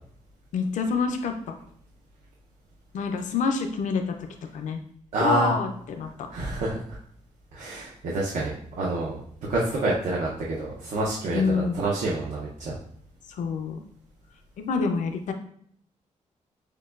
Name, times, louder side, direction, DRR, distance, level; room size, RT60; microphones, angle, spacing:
voice 1, 0.5-1.3 2.9-4.1 4.5-4.8 5.2-6.3 11.3-11.8 13.3-13.8 14.6-15.3, left 5 dB, 75° left, 5 dB, 0.5 m, -27 dB
voice 2, 5.1-5.5 6.3-7.0 7.5-8.5 8.8-9.2 9.5-12.8, right 2 dB, 70° right, -4 dB, 0.7 m, -27 dB
6.3 x 2.2 x 2.4 m, 0.63 s
wide cardioid pair, 155°, 13 cm